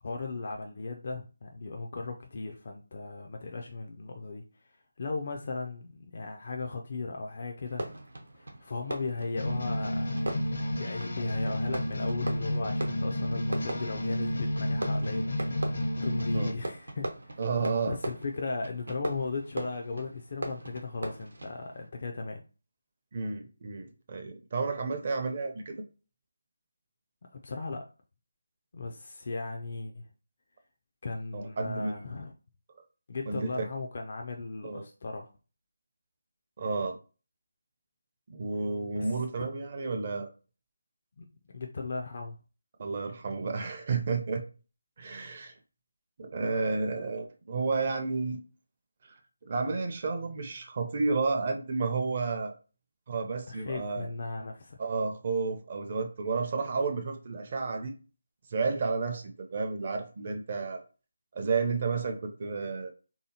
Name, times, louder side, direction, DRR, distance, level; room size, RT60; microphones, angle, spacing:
voice 1, 0.0-4.7 5.0-7.9 8.3-10.1 10.8-15.4 16.0-17.4 17.8-22.4 27.3-27.9 28.7-30.1 31.0-32.3 33.1-35.3 38.9-39.1 41.2-42.4 53.5-54.8, left 3 dB, 45° left, 0.3 m, -37 dB
Fireworks, 7.6-21.9, right 1 dB, 80° right, 0.8 m, -40 dB
sound 1, 9.3-16.5, left 1 dB, 70° left, 0.8 m, -31 dB
voice 2, 17.4-18.0 23.1-25.8 31.3-32.1 33.3-33.7 34.6-34.8 36.6-37.0 38.3-40.3 42.8-44.4 45.0-45.5 46.2-48.4 49.5-52.5 53.1-54.1 54.8-57.9 58.5-60.8 61.3-62.9, right 4 dB, 40° right, 0.5 m, -31 dB
3.3 x 2.7 x 2.7 m
figure-of-eight pair, 165°, 0 cm